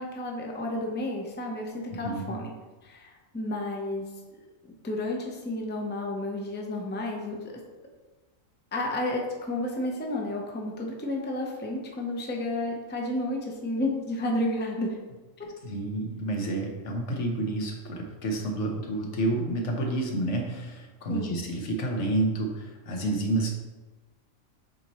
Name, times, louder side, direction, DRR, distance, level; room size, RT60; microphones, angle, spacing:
voice 1, 0.0-2.5 2.8-4.0 4.8-7.5 8.7-15.0 15.4-15.5 21.1-21.4, left 1 dB, 10° left, 0 dB, 0.6 m, -31 dB
voice 2, 1.9-2.4 15.6-23.5, right 2 dB, 65° left, 2 dB, 1.2 m, -29 dB
7.7 x 4.2 x 3.0 m, 1.2 s
omnidirectional pair, 1.4 m